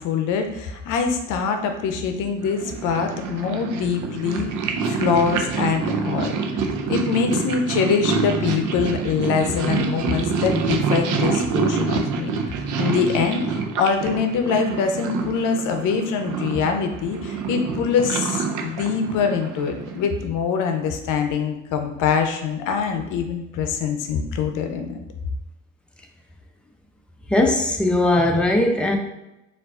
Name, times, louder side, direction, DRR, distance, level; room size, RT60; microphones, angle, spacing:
voice 1, 0.0-4.5 4.9-25.0, left 6 dB, 90° left, 5 dB, 0.6 m, -24 dB
Purr, 2.5-20.1, right 5 dB, 85° right, 0.6 m, -26 dB
voice 2, 27.3-29.0, left 1 dB, 5° left, 1 dB, 0.6 m, -19 dB
4.6 x 2.5 x 3.6 m, 0.93 s
cardioid pair, 90°, 30 cm